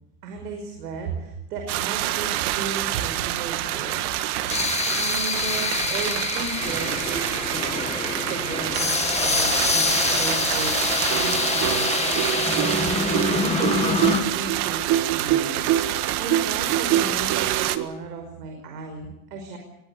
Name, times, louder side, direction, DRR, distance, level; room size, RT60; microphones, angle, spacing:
voice 1, 0.2-4.6 4.9-7.9 8.2-15.7 16.2-19.6, right 4 dB, 90° right, 4 dB, 5.5 m, -35 dB
sound 1, 1.7-17.8, right 14 dB, 65° right, 1.7 m, -27 dB
sound 2, 3.6-14.2, left 5 dB, 15° left, 1.9 m, -26 dB
sound 3, 11.1-17.9, right 12 dB, 40° right, 1.3 m, -26 dB
21.5 x 18.5 x 8.3 m, 0.88 s
supercardioid pair, 145°, 46 cm